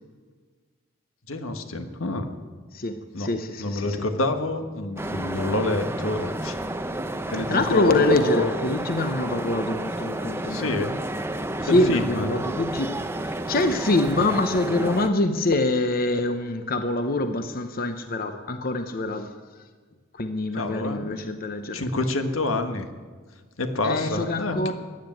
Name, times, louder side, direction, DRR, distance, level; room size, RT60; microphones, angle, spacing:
voice 1, 1.3-2.3 3.1-3.3 3.6-6.6 7.3-8.5 10.5-11.0 11.6-12.3 20.6-21.1 21.7-22.9 23.6-24.7, left 2 dB, 85° left, 7 dB, 1.5 m, -27 dB
voice 2, 2.7-4.0 7.5-10.8 11.6-12.9 13.2-19.3 20.2-21.9 23.8-24.7, left 2 dB, 45° left, 8 dB, 0.9 m, -25 dB
sound 1, 5.0-15.1, right 1 dB, 10° right, 0.7 m, -31 dB
15.0 x 9.7 x 9.1 m, 1.5 s
head